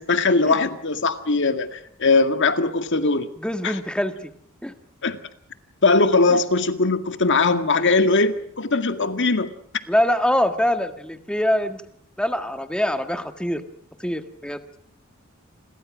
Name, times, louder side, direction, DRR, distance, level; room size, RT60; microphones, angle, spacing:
voice 1, 0.0-3.3 3.6-3.7 5.0-5.2 5.8-9.5, left 3 dB, 60° left, 9 dB, 2.0 m, -20 dB
voice 2, 3.4-4.3 4.6-4.7 6.3-6.4 9.9-11.8 12.2-13.6 14.0-14.6, left 1 dB, 5° left, 8 dB, 1.7 m, -24 dB
29.0 x 22.5 x 6.3 m, 0.65 s
head